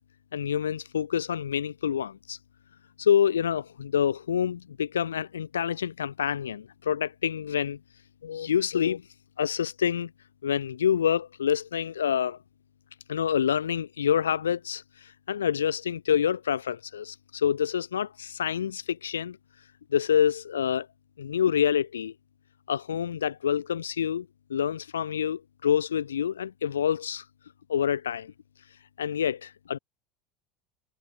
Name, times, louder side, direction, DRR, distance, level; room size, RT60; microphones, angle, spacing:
voice 1, 0.3-2.4 3.0-7.8 8.2-9.0 9.4-10.1 10.4-12.4 13.1-19.4 19.9-20.9 21.2-22.1 22.7-27.2 27.7-28.3 29.0-29.8, left 8 dB, 75° left, 7.4 m, -27 dB
figure-of-eight pair, 75°, 0 cm